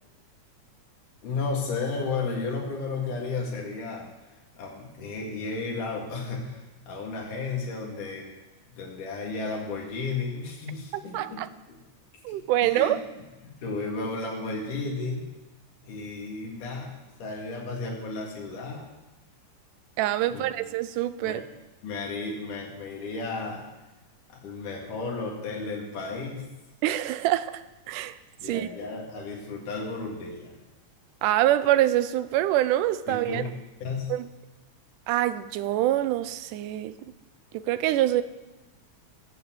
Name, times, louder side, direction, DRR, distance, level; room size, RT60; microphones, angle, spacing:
voice 1, 1.2-4.1 4.6-8.3 8.7-11.4 11.7-11.8 12.3-12.9 13.4-15.3 15.8-18.9 20.3-20.7 21.2-21.4 21.8-23.6 24.4-26.5 28.4-30.6 33.1-33.5 33.8-34.1, left 4 dB, 80° left, -1 dB, 3.7 m, -33 dB
voice 2, 11.1-11.5 12.2-13.0 20.0-21.4 26.8-27.6 27.9-28.2 28.4-28.7 31.2-33.4 34.1-34.3 35.1-36.9 37.5-38.2, right 14 dB, 85° right, 14 dB, 2.2 m, -25 dB
17.5 x 6.8 x 7.8 m, 1.1 s
omnidirectional pair, 3.6 m